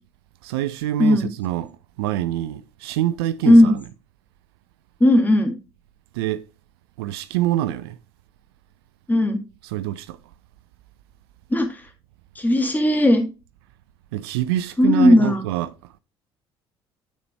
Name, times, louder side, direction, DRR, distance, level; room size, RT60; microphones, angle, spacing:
voice 1, 0.4-3.8 6.1-6.5 7.0-8.0 9.6-10.2 14.1-16.0, right 13 dB, 70° right, 0.4 m, -26 dB
voice 2, 5.0-5.5 9.1-9.4 11.5-11.8 12.4-13.2 14.8-15.4, left 1 dB, 15° left, 2.0 m, -16 dB
9.4 x 4.2 x 3.3 m
figure-of-eight pair, 55°, 13 cm